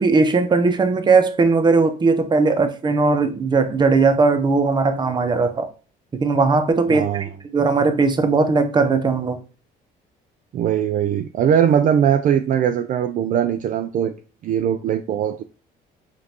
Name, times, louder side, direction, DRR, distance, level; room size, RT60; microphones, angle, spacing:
voice 1, 0.0-5.7 6.1-9.4, right 4 dB, 25° right, 0.8 m, -18 dB
voice 2, 6.9-7.3 10.5-14.1 14.4-15.4, right 9 dB, 50° right, 0.4 m, -20 dB
5.1 x 2.6 x 2.9 m
cardioid pair, 110°, 17 cm